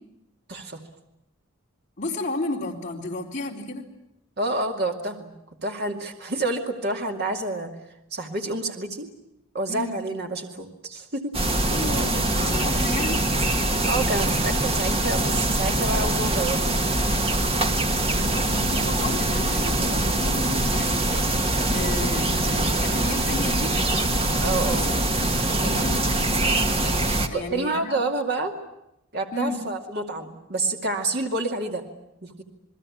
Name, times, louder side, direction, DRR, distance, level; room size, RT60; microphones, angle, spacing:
voice 1, 0.5-0.8 4.4-5.3 5.6-7.7 8.1-9.1 9.5-11.3 13.8-16.9 24.4-24.9 27.3-28.5 29.1-31.8 32.2-32.3, right 2 dB, 50° right, 3 dB, 2.4 m, -28 dB
voice 2, 2.0-3.8 9.7-10.0 11.7-13.2 18.2-23.7 24.6-24.9 25.4-28.0 29.3-29.6, left 2 dB, 35° left, -2 dB, 4.0 m, -33 dB
sound 1, 11.3-27.3, right 1 dB, 30° right, 1.7 m, -23 dB
28.5 x 20.5 x 8.7 m, 0.85 s
head